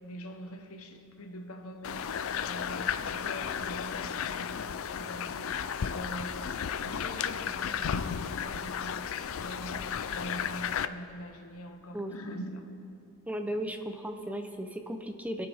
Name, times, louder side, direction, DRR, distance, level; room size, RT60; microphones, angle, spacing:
voice 1, 0.0-12.6, equal, 85° left, 6 dB, 1.1 m, -44 dB
sound 1, 1.8-10.9, left 7 dB, 65° left, 0.4 m, -34 dB
voice 2, 13.3-15.5, equal, 5° right, 5 dB, 0.6 m, -35 dB
21.5 x 8.7 x 3.5 m, 2.7 s
head